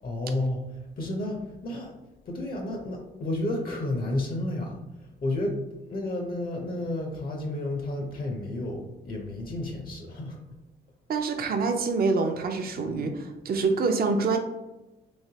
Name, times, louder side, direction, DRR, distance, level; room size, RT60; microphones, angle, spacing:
voice 1, 0.0-1.9 2.3-5.6 5.8-10.4, left 1 dB, 50° left, 2 dB, 0.8 m, -31 dB
voice 2, 11.1-14.4, right 4 dB, 50° right, 5 dB, 0.6 m, -26 dB
3.2 x 3.1 x 2.8 m, 1.0 s
cardioid pair, 90°, 20 cm